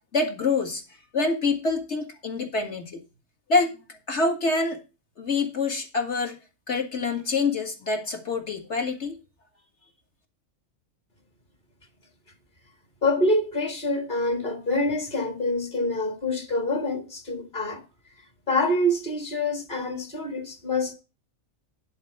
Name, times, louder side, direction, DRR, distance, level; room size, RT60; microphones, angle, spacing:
voice 1, 0.1-0.8 1.1-3.0 3.5-4.8 5.2-6.4 6.7-9.2, left 3 dB, 55° left, 2.2 m, -26 dB
voice 2, 13.0-17.8 18.5-20.9, left 1 dB, 35° left, 1.9 m, -26 dB
11.0 x 4.4 x 6.6 m
omnidirectional pair, 1.4 m